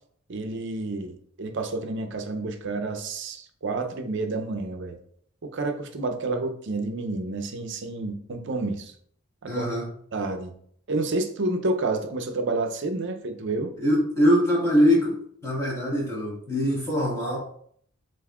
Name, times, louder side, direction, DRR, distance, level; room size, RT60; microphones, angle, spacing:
voice 1, 0.3-5.0 5.4-8.9 9.4-9.7 10.1-10.5 10.9-13.7, right 2 dB, 60° right, 6 dB, 0.6 m, -29 dB
voice 2, 9.4-9.9 13.8-15.2 15.4-17.4, equal, 15° left, -6 dB, 1.6 m, -22 dB
7.1 x 2.6 x 2.4 m, 0.63 s
head